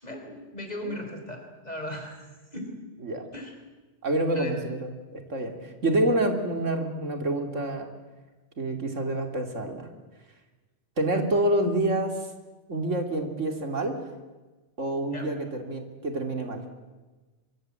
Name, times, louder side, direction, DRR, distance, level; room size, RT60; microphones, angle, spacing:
voice 1, 0.0-2.2 2.5-2.8 3.3-3.5 4.3-4.5 15.1-15.3, equal, 35° left, 4 dB, 4.8 m, -37 dB
voice 2, 4.0-7.9 8.6-9.9 11.0-12.2 12.7-14.0 14.8-16.6, right 1 dB, 90° right, 6 dB, 3.1 m, -27 dB
24.5 x 23.5 x 7.8 m, 1.2 s
omnidirectional pair, 1.2 m